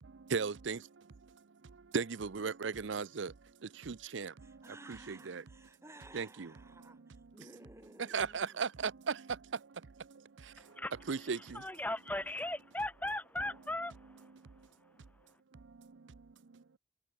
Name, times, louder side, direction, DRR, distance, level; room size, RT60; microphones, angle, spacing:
voice 1, 0.0-5.4 6.1-6.5 8.1-11.7 14.3-14.7 15.5-16.8, right 5 dB, 75° right, 0.6 m, -39 dB
voice 2, 4.4-8.7, right 1 dB, 15° right, 6.6 m, -56 dB
voice 3, 11.5-13.9, left 1 dB, 10° left, 1.4 m, -37 dB
head